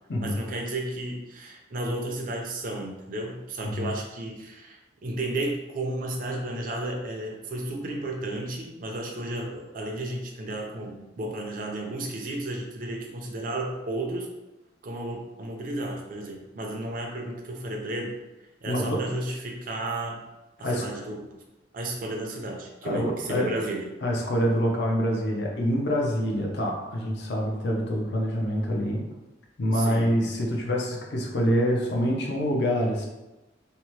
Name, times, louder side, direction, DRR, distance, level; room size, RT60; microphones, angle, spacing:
voice 1, 0.2-14.3 14.8-18.1 18.6-20.2 20.6-21.3 21.7-23.9 29.7-30.2, right 1 dB, 45° right, 1 dB, 0.5 m, -33 dB
voice 2, 3.6-3.9 18.7-19.0 20.6-20.9 22.8-23.5 24.0-29.0 29.6-33.1, equal, 60° left, -1 dB, 0.5 m, -26 dB
2.8 x 2.1 x 3.0 m, 1.0 s
head